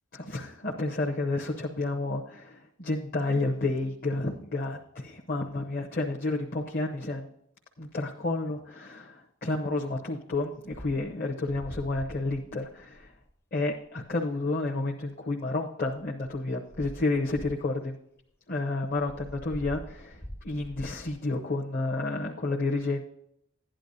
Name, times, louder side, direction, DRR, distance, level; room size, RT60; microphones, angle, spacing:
voice 1, 0.1-7.3 7.8-13.1 13.5-18.0 18.5-23.0, left 2 dB, 45° left, 0 dB, 0.9 m, -30 dB
sound 1, 10.7-11.1 11.5-13.3 14.0-14.1 15.9-16.4 16.7-17.8 18.8-21.2, equal, 10° left, 0.5 m, -44 dB
12.5 x 10.0 x 2.7 m, 0.74 s
head